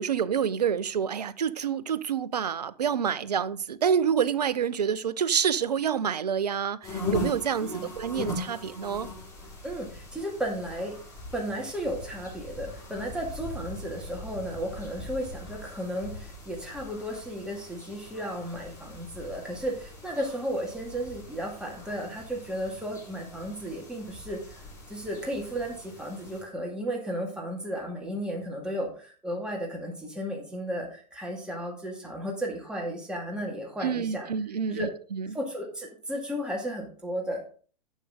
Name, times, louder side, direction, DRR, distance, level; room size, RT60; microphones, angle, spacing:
voice 1, 0.0-9.1 33.8-35.3, right 7 dB, 70° right, 0.6 m, -28 dB
sound 1, 6.8-26.4, left 2 dB, 15° left, 4.4 m, -40 dB
voice 2, 7.6-7.9 9.6-10.9 11.3-24.6 24.9-34.3 34.7-34.9 35.3-37.4, equal, 5° right, 2.3 m, -34 dB
11.5 x 6.4 x 3.8 m
figure-of-eight pair, 100°, 21 cm